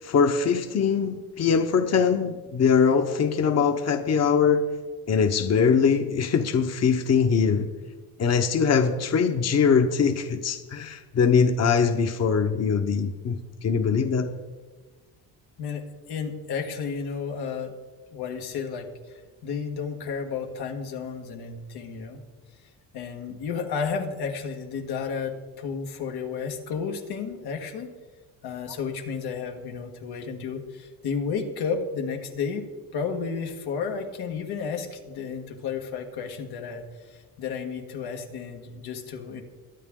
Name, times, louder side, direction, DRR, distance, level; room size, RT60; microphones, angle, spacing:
voice 1, 0.0-4.6 5.1-7.7 8.2-14.3, left 6 dB, 40° left, 7 dB, 1.0 m, -22 dB
voice 2, 15.6-17.7 18.1-22.2 22.9-27.9 28.4-39.4, left 6 dB, 90° left, 3 dB, 1.8 m, -32 dB
23.0 x 9.0 x 3.7 m, 1.3 s
cardioid pair, 125°, 38 cm